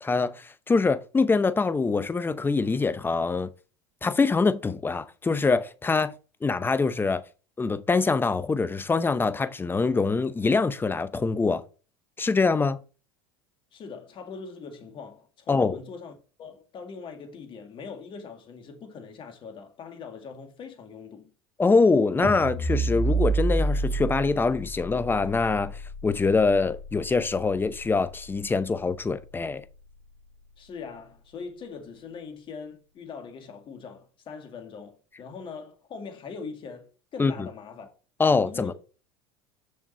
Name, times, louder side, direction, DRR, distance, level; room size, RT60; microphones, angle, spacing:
voice 1, 0.0-3.5 4.0-6.1 6.4-7.2 7.6-11.6 12.2-12.8 15.5-15.7 21.6-29.6 37.2-37.3 38.2-38.7, left 4 dB, 15° left, 0.7 m, -24 dB
voice 2, 13.7-21.3 30.6-37.9 38.4-38.7, left 5 dB, 40° left, 2.1 m, -41 dB
sound 1, 22.2-28.5, right 3 dB, 40° right, 2.3 m, -30 dB
6.5 x 6.4 x 4.2 m
hypercardioid pair, 85°, 13 cm